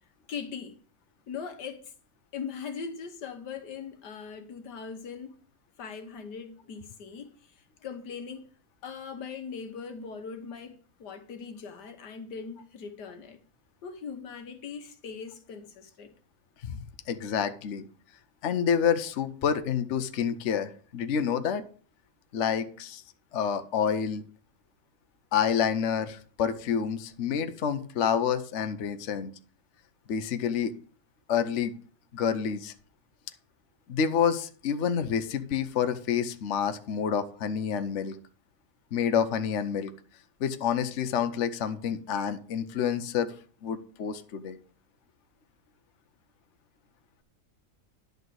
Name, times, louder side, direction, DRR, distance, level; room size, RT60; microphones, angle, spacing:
voice 1, 0.3-0.8 1.3-1.9 2.3-5.4 5.8-7.3 7.6-8.5 8.8-13.4 13.8-16.1, left 6 dB, 85° left, 1.8 m, -40 dB
voice 2, 16.6-17.8 18.4-21.6 22.3-23.0 23.3-24.2 25.3-29.3 30.1-30.7 31.3-31.8 32.1-32.7 33.9-38.2 38.9-39.9 40.4-43.3 43.6-44.6, left 7 dB, 55° left, 1.0 m, -28 dB
11.0 x 4.0 x 7.8 m
omnidirectional pair, 1.7 m